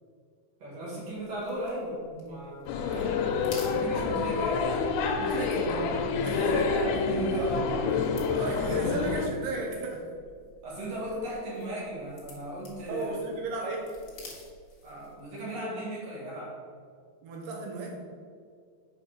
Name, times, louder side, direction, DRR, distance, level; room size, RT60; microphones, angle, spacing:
voice 1, 0.6-3.3 3.5-4.8 5.3-5.5 6.3-7.7 10.6-13.2 13.6-13.8 14.8-16.6, right 1 dB, 50° right, -5 dB, 2.7 m, -36 dB
sound 1, 0.9-15.3, left 3 dB, 70° left, 1.1 m, -53 dB
sound 2, 2.7-9.3, left 5 dB, 90° left, 2.7 m, -28 dB
voice 2, 5.2-6.6 7.4-7.5 8.3-10.0 12.9-13.8 17.2-18.0, right 3 dB, 85° right, 0 dB, 3.3 m, -34 dB
7.4 x 4.9 x 5.0 m, 2.1 s
omnidirectional pair, 4.6 m